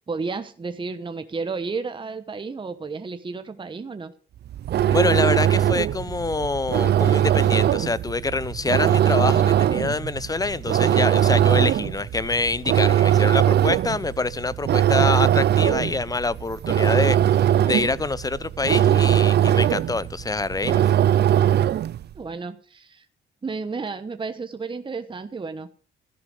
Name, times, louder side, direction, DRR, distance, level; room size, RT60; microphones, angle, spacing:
voice 1, 0.1-4.1 22.1-23.1 23.4-25.7, right 4 dB, 25° right, 1.0 m, -32 dB
sound 1, 4.5-22.0, right 11 dB, 55° right, 0.5 m, -20 dB
voice 2, 4.9-21.0, left 3 dB, 20° left, 0.6 m, -26 dB
13.5 x 10.5 x 4.9 m
cardioid pair, 90°, 20 cm